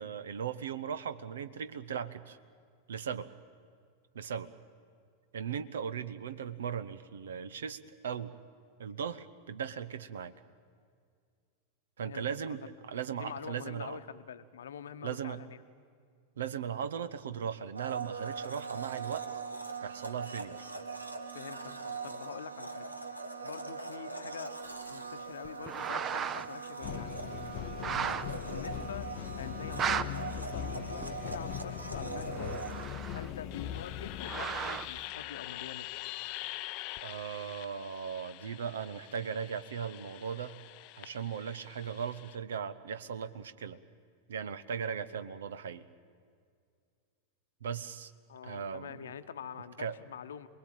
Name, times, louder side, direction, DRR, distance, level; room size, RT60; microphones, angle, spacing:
voice 1, 0.0-2.4 2.9-3.3 4.1-4.5 5.3-8.3 8.8-10.3 12.0-14.0 15.0-15.4 16.4-19.3 19.8-20.7 27.9-28.2 30.8-30.9 37.0-40.6 41.0-43.8 44.3-45.8 47.6-48.1 48.4-49.0 49.8-50.0, right 7 dB, 65° right, 13 dB, 1.0 m, -38 dB
voice 2, 12.0-12.6 13.1-15.6 21.3-22.9 23.4-24.6 24.9-27.2 28.3-32.6 33.1-35.9 48.3-50.5, left 8 dB, 65° left, 11 dB, 1.1 m, -45 dB
Domestic sounds home sounds, 17.7-32.9, right 4 dB, 85° right, 1.5 m, -41 dB
sound 1, 25.4-26.5 26.9-27.0 27.7-28.2 28.8-28.9 29.6-30.0 31.0-31.1 31.9-33.5 34.1-35.0, right 7 dB, 25° right, 0.8 m, -35 dB
sound 2, 26.8-42.3, left 12 dB, 45° left, 0.7 m, -42 dB
27.0 x 20.5 x 9.0 m, 2.2 s
figure-of-eight pair, 90°, 0 cm